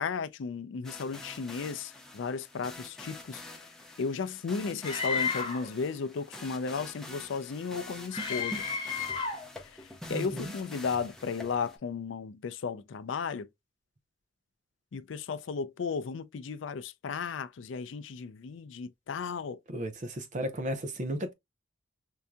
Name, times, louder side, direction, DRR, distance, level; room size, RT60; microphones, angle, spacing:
voice 1, 0.0-3.4 4.0-8.6 9.6-13.5 14.9-19.6, left 5 dB, 70° left, 0.4 m, -35 dB
sound 1, 0.8-11.8, left 1 dB, 5° left, 0.6 m, -46 dB
Screaming, 4.8-5.7 8.1-9.5, left 5 dB, 25° left, 1.1 m, -32 dB
voice 2, 10.1-10.5 19.7-21.3, equal, 40° right, 0.6 m, -34 dB
4.6 x 2.7 x 2.2 m
head